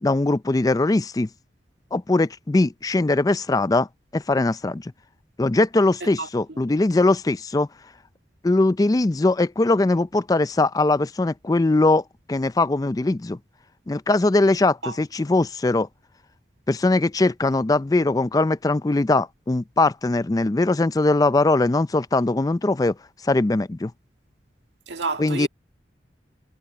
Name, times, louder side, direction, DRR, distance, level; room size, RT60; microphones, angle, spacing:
voice 1, 0.0-1.3 1.9-3.9 4.1-4.9 5.4-7.7 8.4-13.4 13.9-15.9 16.7-22.9 23.2-23.9 25.2-25.5, left 2 dB, 20° left, 0.4 m, -21 dB
voice 2, 6.0-6.6 14.8-15.0 24.9-25.5, right 3 dB, 90° right, 1.7 m, -30 dB
head